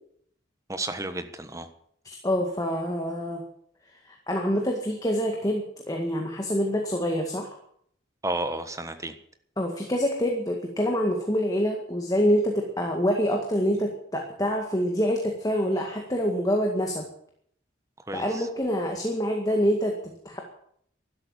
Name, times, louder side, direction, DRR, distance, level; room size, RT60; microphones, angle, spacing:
voice 1, 0.7-1.7 8.2-9.2 18.1-18.5, right 2 dB, 15° right, 8 dB, 1.3 m, -32 dB
voice 2, 2.1-3.4 4.1-7.6 9.6-17.0 18.1-20.4, equal, 20° left, 2 dB, 1.9 m, -26 dB
12.5 x 12.0 x 8.7 m, 0.67 s
head